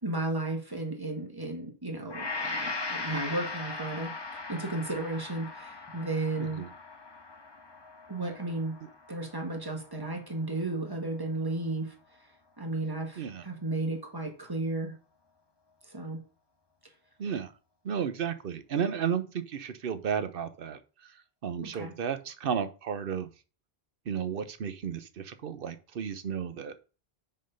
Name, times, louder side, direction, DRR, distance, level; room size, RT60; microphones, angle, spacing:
voice 1, 0.0-4.1 4.5-6.6 8.1-8.7 9.1-11.9 12.6-14.9 15.8-16.2 21.6-21.9, right 2 dB, 20° right, 3 dB, 1.5 m, -34 dB
Gong, 2.1-10.4 10.9-11.0, left 3 dB, 25° left, 0.9 m, -39 dB
voice 2, 17.2-17.5 17.8-23.3 24.1-26.7, right 7 dB, 65° right, 12 dB, 0.9 m, -33 dB
6.3 x 4.4 x 5.5 m, 0.35 s
omnidirectional pair, 1.0 m